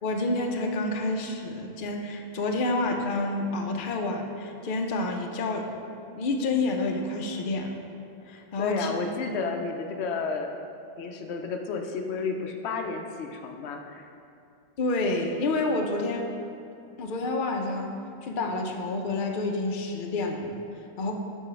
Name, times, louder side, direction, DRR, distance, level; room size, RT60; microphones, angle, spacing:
voice 1, 0.0-5.7 6.2-7.8 8.3-8.9 14.8-16.3 17.0-17.9 18.2-20.5 21.0-21.1, left 2 dB, 55° left, 3 dB, 0.8 m, -28 dB
voice 2, 8.6-10.6 11.0-14.1, left 4 dB, 85° left, 4 dB, 0.8 m, -32 dB
5.4 x 4.9 x 5.7 m, 2.5 s
omnidirectional pair, 1.1 m